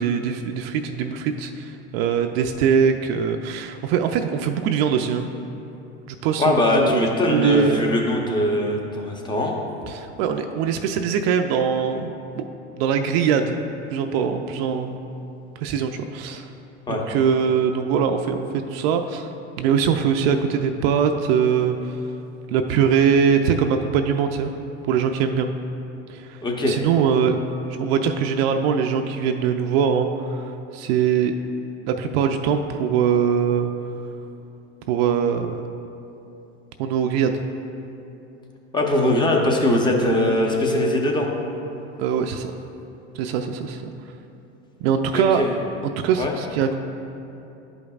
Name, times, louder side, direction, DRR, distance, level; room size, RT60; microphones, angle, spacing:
voice 1, 0.0-5.3 6.2-8.0 9.9-12.5 12.8-13.6 13.9-15.0 15.6-16.5 16.9-22.0 22.5-24.5 24.9-25.5 26.1-27.4 27.7-31.4 31.9-33.7 34.9-35.6 36.8-37.3 42.0-42.5 43.1-43.9 44.8-45.4 45.8-46.8, right 7 dB, 60° right, 5 dB, 0.5 m, -22 dB
voice 2, 6.4-9.5 16.9-17.0 26.4-26.7 38.7-41.3 45.1-45.5 46.2-46.3, left 1 dB, 15° left, 0 dB, 0.8 m, -21 dB
11.0 x 5.2 x 2.4 m, 2.8 s
supercardioid pair, 125°, 33 cm